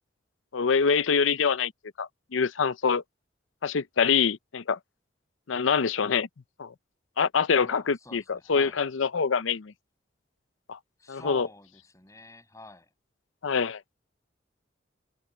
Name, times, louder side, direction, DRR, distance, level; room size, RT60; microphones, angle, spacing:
voice 1, 0.5-1.7 2.0-3.0 3.6-4.8 5.5-6.3 6.6-6.7 7.2-9.7 10.7-10.8 11.1-11.5 13.4-13.8, left 6 dB, 90° left, 0.6 m, -25 dB
voice 2, 7.6-8.8 11.0-12.9, left 2 dB, 15° left, 6.7 m, -47 dB
head